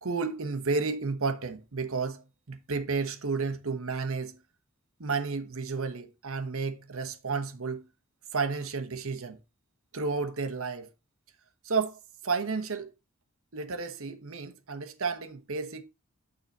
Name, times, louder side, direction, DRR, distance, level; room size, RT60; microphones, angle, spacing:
voice 1, 0.0-2.2 2.5-4.3 5.0-7.8 8.3-9.4 9.9-10.9 11.6-12.0 12.2-12.9 13.5-15.8, right 4 dB, 65° right, 1.1 m, -32 dB
9.3 x 4.0 x 4.1 m
head